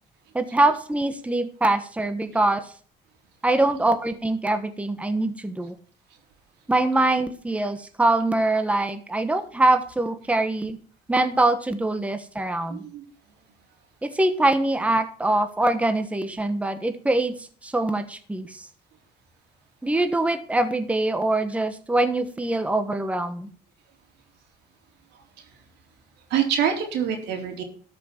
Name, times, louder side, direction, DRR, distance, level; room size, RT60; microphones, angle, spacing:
voice 1, 0.3-2.7 3.4-5.7 6.7-10.8 11.1-12.8 14.0-18.7 19.8-23.5, right 2 dB, 10° right, 9 dB, 1.2 m, -23 dB
voice 2, 12.7-13.0 26.3-27.6, right 8 dB, 80° right, 3 dB, 3.6 m, -25 dB
13.0 x 6.2 x 7.2 m, 0.43 s
cardioid pair, 110°, 17 cm